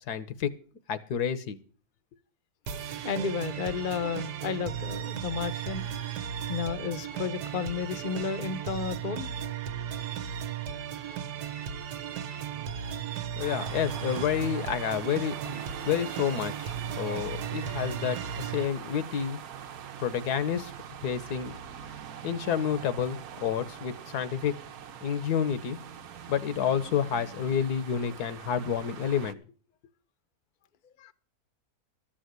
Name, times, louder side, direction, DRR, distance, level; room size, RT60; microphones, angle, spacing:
voice 1, 0.1-0.5 0.9-1.6 13.4-19.4 20.0-20.7 21.0-21.6 22.2-24.5 25.0-25.8 26.3-29.4, left 8 dB, 75° left, 1.5 m, -29 dB
sound 1, 2.7-18.6, right 9 dB, 85° right, 1.4 m, -36 dB
voice 2, 3.0-5.9 6.5-9.3 31.0-31.1, left 5 dB, 40° left, 0.7 m, -32 dB
sound 2, 13.4-29.3, right 9 dB, 65° right, 1.2 m, -43 dB
13.5 x 6.4 x 8.0 m
omnidirectional pair, 1.7 m